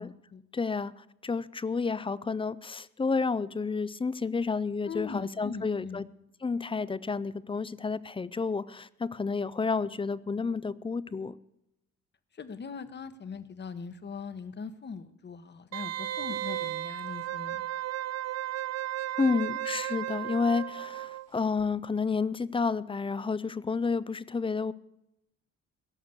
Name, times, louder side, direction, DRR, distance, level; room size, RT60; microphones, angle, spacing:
voice 1, 0.0-0.4 4.8-6.0 12.3-17.6, left 5 dB, 35° left, 11 dB, 1.0 m, -41 dB
voice 2, 0.5-6.0 6.4-11.3 19.2-24.7, left 4 dB, 20° left, 18 dB, 0.4 m, -30 dB
Wind instrument woodwind instrument, 15.7-21.3 21.6-21.7, right 13 dB, 55° right, 0.5 m, -34 dB
17.0 x 6.5 x 8.1 m, 0.84 s
cardioid pair, 90°, 30 cm